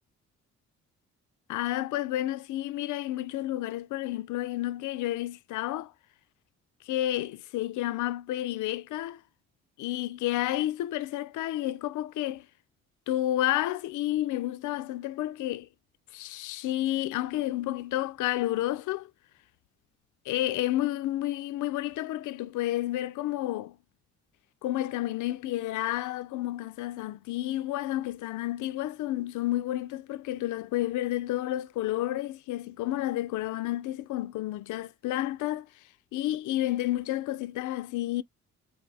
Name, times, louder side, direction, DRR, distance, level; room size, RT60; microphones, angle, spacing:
voice 1, 1.5-5.9 6.9-9.2 9.8-12.5 13.1-15.7 16.1-19.1 20.3-23.8 24.6-35.7 36.1-38.2, left 14 dB, 80° left, 0.5 m, -30 dB
5.4 x 2.2 x 3.3 m
cardioid pair, 90°, 30 cm